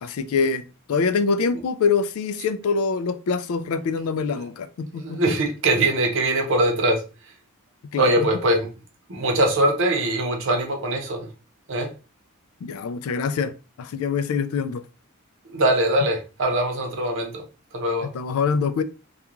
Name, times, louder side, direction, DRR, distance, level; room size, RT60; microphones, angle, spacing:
voice 1, 0.0-5.2 7.9-8.3 12.6-14.8 18.0-18.8, left 5 dB, 75° left, 0.3 m, -25 dB
voice 2, 5.0-7.0 8.0-8.7 9.1-11.3 11.7-11.9 15.5-17.4 17.7-18.1, right 1 dB, 60° right, 0.7 m, -22 dB
2.4 x 2.3 x 2.9 m
head